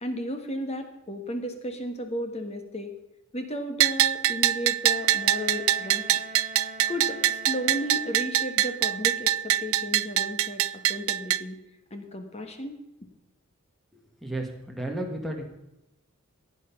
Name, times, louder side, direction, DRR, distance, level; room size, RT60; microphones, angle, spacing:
voice 1, 0.0-2.9 3.3-6.1 6.9-11.6 11.9-12.7, equal, 30° left, 6 dB, 1.4 m, -34 dB
Bell, 3.8-11.4, right 12 dB, 80° right, 0.4 m, -24 dB
Bowed string instrument, 4.5-8.6, right 1 dB, 30° right, 1.0 m, -46 dB
voice 2, 13.9-15.4, right 1 dB, ahead, 2 dB, 1.6 m, -33 dB
16.0 x 9.2 x 5.8 m, 0.89 s
head